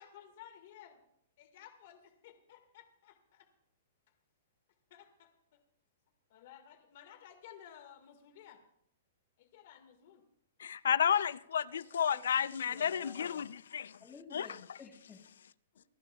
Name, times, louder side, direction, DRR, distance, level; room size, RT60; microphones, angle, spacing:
voice 1, 0.0-1.0 1.4-3.5 4.9-5.6 6.3-8.6 9.4-10.2, left 10 dB, 50° left, 1.7 m, -55 dB
voice 2, 10.6-13.5 13.7-14.0 14.3-14.5, left 8 dB, 85° left, 0.4 m, -31 dB
voice 3, 11.6-12.2 12.5-13.5 14.0-15.2, left 4 dB, 15° left, 1.2 m, -54 dB
26.0 x 11.5 x 2.3 m
hypercardioid pair, 165°, 0 cm